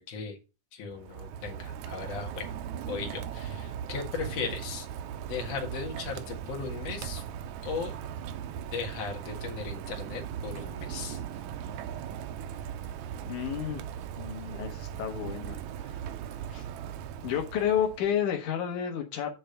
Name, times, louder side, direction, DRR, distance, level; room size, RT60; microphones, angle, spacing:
voice 1, 0.1-0.4 0.7-2.5 2.9-4.9 5.3-7.2 7.6-8.0 8.7-11.2, left 5 dB, 60° left, 2 dB, 2.6 m, -37 dB
Rain, 0.9-18.2, right 9 dB, 80° right, 2.0 m, -38 dB
voice 2, 13.2-13.8 14.2-15.9 16.5-16.6 17.2-19.3, left 9 dB, 85° left, 4 dB, 2.7 m, -31 dB
8.5 x 3.4 x 6.5 m, 0.30 s
omnidirectional pair, 3.4 m